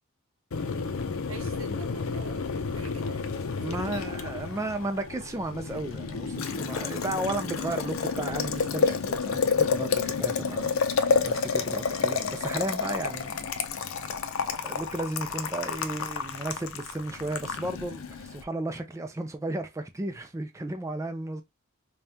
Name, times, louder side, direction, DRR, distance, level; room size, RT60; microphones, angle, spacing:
Boiling, 0.5-18.4, left 5 dB, 70° left, 0.5 m, -30 dB
voice 1, 1.3-2.5 2.7-3.3 3.7-4.1, right 3 dB, 85° right, 1.1 m, -44 dB
voice 2, 3.6-13.9 14.5-21.4, right 1 dB, 15° right, 0.4 m, -34 dB
5.2 x 2.3 x 2.8 m
head